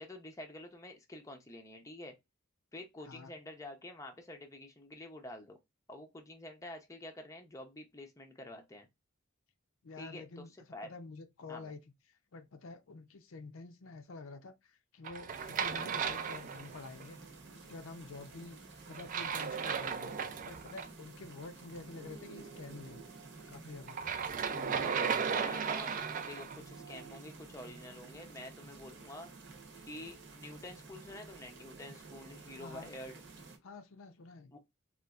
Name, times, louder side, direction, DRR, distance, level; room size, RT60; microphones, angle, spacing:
voice 1, 0.0-2.2 2.7-5.6 5.9-8.9 10.0-10.9 11.5-11.7 25.2-29.3 29.8-33.2 34.5-34.6, left 1 dB, 15° left, 0.5 m, -48 dB
voice 2, 3.0-3.3 9.8-10.5 10.8-17.2 17.6-18.6 18.9-20.1 20.5-23.0 23.5-24.0 24.4-25.4 32.6-32.9 33.6-34.6, left 3 dB, 75° left, 0.6 m, -49 dB
sound 1, 15.0-17.0 18.9-20.9 23.9-26.6, right 6 dB, 40° right, 0.3 m, -35 dB
sound 2, 15.3-33.6, right 4 dB, 60° right, 0.9 m, -52 dB
4.0 x 2.4 x 2.3 m
head